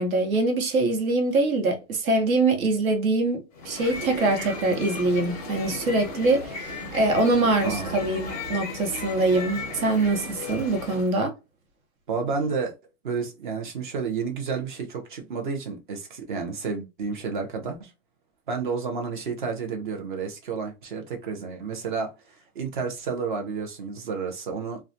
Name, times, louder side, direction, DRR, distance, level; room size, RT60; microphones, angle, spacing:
voice 1, 0.0-11.3, right 2 dB, 70° right, 1.1 m, -24 dB
sound 1, 3.5-11.2, left 2 dB, 25° left, 0.4 m, -35 dB
voice 2, 7.6-8.0 12.1-12.7 13.0-17.9 18.5-24.8, right 5 dB, 35° right, 0.5 m, -31 dB
2.3 x 2.1 x 2.6 m
hypercardioid pair, 160°, 44 cm